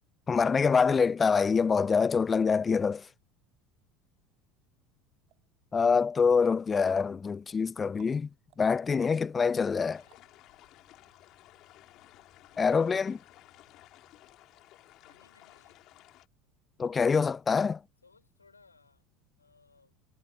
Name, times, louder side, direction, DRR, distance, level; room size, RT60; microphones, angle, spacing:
voice 1, 0.3-3.0 5.7-8.3 8.6-10.0 12.6-13.2 16.8-17.8, left 5 dB, 25° left, 0.4 m, -25 dB
sound 1, 5.3-10.7 11.1-11.2, right 17 dB, 50° right, 4.1 m, -66 dB
sound 2, 9.9-16.3, left 16 dB, 50° left, 3.4 m, -56 dB
voice 2, 15.0-15.8 18.0-19.1 19.4-20.0, left 4 dB, 85° left, 4.9 m, -62 dB
figure-of-eight pair, 70°, 0 cm